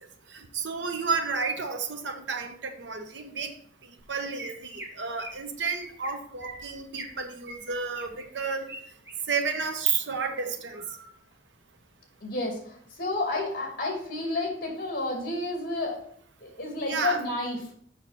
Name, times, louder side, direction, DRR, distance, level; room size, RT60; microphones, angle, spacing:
voice 1, 0.3-3.5 4.1-8.7 9.3-10.9 16.9-17.2, right 5 dB, 80° right, 6 dB, 1.0 m, -31 dB
Chirp tweet, 4.0-4.1 4.4-4.9 5.2-5.4 5.7-6.1 6.4-7.1 7.5-8.8 9.1-9.6 10.0-10.3 10.7-11.1, right 1 dB, 15° right, 1.6 m, -43 dB
voice 2, 12.2-16.0 16.4-17.6, left 2 dB, 50° left, 0 dB, 2.4 m, -31 dB
7.0 x 5.9 x 4.1 m, 0.63 s
head